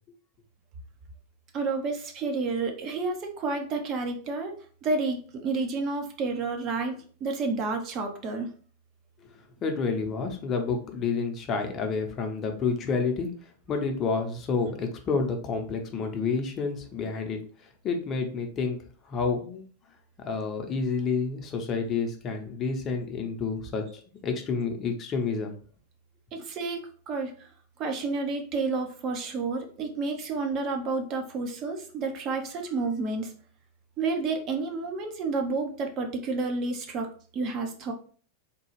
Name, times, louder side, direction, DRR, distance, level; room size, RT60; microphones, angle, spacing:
voice 1, 1.5-4.5 4.8-8.5 26.3-27.3 27.8-33.3 34.0-37.1 37.3-37.9, right 3 dB, 35° right, 4 dB, 0.7 m, -30 dB
voice 2, 9.2-18.8 19.0-19.6 20.2-25.5, left 4 dB, 30° left, 4 dB, 0.7 m, -29 dB
3.7 x 2.3 x 3.0 m, 0.44 s
figure-of-eight pair, 90°, 0 cm